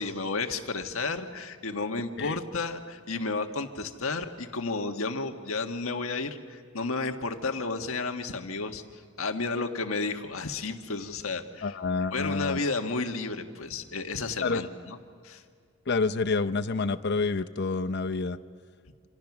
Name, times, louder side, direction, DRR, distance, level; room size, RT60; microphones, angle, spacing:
voice 1, 0.0-8.8 9.2-11.7 12.1-15.0 15.2-15.4, left 3 dB, 75° left, 5 dB, 1.6 m, -32 dB
voice 2, 11.6-12.6 14.4-14.7 15.9-18.4, left 4 dB, 55° left, 12 dB, 0.7 m, -28 dB
27.5 x 26.5 x 6.1 m, 2.2 s
head